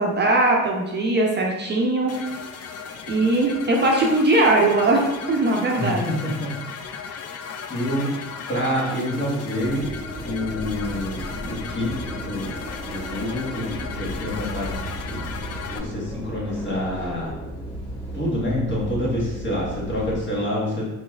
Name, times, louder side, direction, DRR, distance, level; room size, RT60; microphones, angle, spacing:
voice 1, 0.0-2.3 3.1-6.1, right 2 dB, 35° right, -1 dB, 0.6 m, -20 dB
sound 1, 2.1-15.8, left 6 dB, 55° left, 0.4 m, -36 dB
voice 2, 5.8-6.5 6.9-7.2 7.7-8.2 8.5-9.9 10.2-12.5 12.8-15.2 15.7-17.3 18.1-20.8, left 1 dB, 40° left, -5 dB, 1.4 m, -27 dB
sound 2, 9.6-20.2, equal, 5° left, 1.4 m, -35 dB
4.0 x 3.2 x 2.4 m, 0.99 s
cardioid pair, 90°, 30 cm